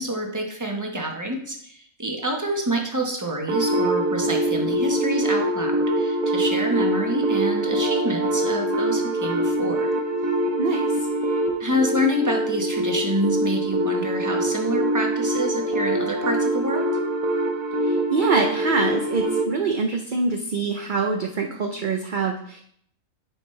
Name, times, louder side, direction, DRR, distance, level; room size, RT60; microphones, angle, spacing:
voice 1, 0.0-9.9 11.6-16.8, equal, 15° right, 1 dB, 1.1 m, -27 dB
sound 1, 3.5-19.5, right 1 dB, 75° right, 1.5 m, -24 dB
voice 2, 10.6-11.1 17.8-22.6, right 4 dB, 50° right, 3 dB, 0.6 m, -25 dB
11.0 x 5.2 x 3.3 m, 0.66 s
omnidirectional pair, 1.5 m